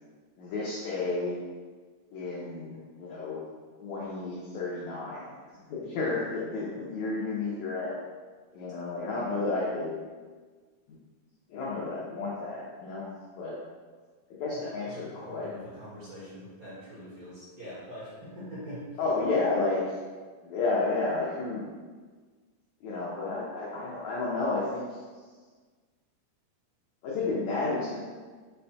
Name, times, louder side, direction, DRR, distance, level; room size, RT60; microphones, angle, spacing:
voice 1, 0.4-1.4 2.1-3.4 3.8-5.4 5.7-8.0 8.5-10.0 11.5-13.1 13.4-13.5 14.4-15.5 19.0-19.8 20.4-21.7 22.8-24.8 27.0-28.0, left 3 dB, 85° left, -6 dB, 1.6 m, -31 dB
voice 2, 14.5-19.0, equal, 55° right, -10 dB, 1.9 m, -43 dB
5.8 x 2.2 x 4.1 m, 1.5 s
omnidirectional pair, 4.2 m